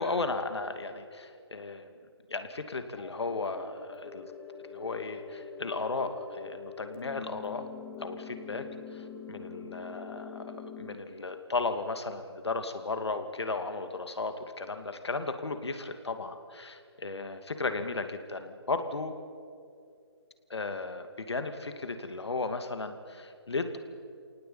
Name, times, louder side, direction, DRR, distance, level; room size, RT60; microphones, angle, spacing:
voice 1, 0.0-1.9 2.3-4.3 4.7-7.6 8.0-8.7 8.9-19.1 20.5-23.8, left 3 dB, 70° left, 8 dB, 2.5 m, -35 dB
sound 1, 2.9-10.9, left 6 dB, 15° left, 2.2 m, -44 dB
28.0 x 18.5 x 8.8 m, 2.4 s
figure-of-eight pair, 155°, 14 cm